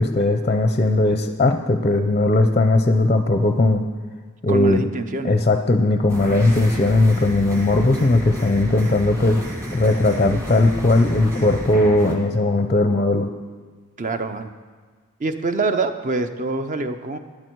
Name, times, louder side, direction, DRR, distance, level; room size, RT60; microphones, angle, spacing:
voice 1, 0.0-3.8 4.4-4.8 5.2-9.4 9.7-13.3, left 2 dB, 30° left, 7 dB, 0.5 m, -18 dB
voice 2, 4.5-5.4 14.0-14.5 15.2-17.2, right 3 dB, 35° right, 9 dB, 0.6 m, -25 dB
sound 1, 6.1-12.1, equal, 15° right, 1.6 m, -32 dB
12.0 x 9.5 x 4.6 m, 1.5 s
head